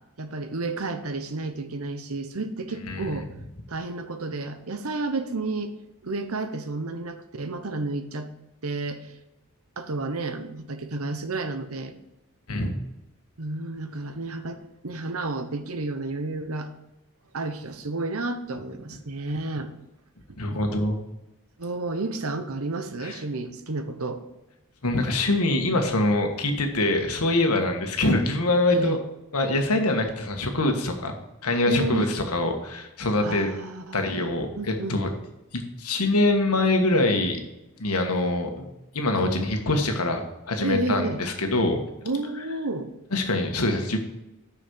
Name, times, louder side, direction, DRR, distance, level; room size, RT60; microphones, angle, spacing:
voice 1, 0.2-3.3 3.7-5.7 6.0-8.3 8.6-9.1 9.8-11.9 13.4-16.7 17.3-19.7 21.6-24.2 28.7-29.0 31.7-32.0 33.2-34.1 34.5-35.0 40.6-41.2 42.0-42.9, right 3 dB, 75° right, 9 dB, 1.0 m, -31 dB
voice 2, 20.4-21.0 23.0-23.2 24.8-29.0 29.3-31.1 31.4-33.5 33.9-35.1 35.5-37.4 37.8-38.7 38.9-41.8 43.1-44.0, left 2 dB, 90° left, 4 dB, 1.5 m, -24 dB
6.5 x 6.3 x 6.3 m, 0.94 s
head